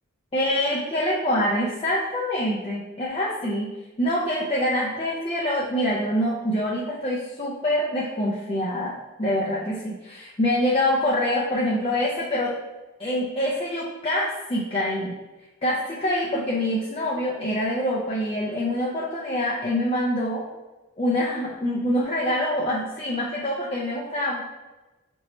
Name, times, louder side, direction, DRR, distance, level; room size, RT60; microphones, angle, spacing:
voice 1, 0.3-3.7 4.0-8.9 9.2-12.5 13.0-15.2 15.6-20.4 21.0-24.4, left 1 dB, 25° left, -5 dB, 0.4 m, -25 dB
4.4 x 3.0 x 3.0 m, 1.1 s
head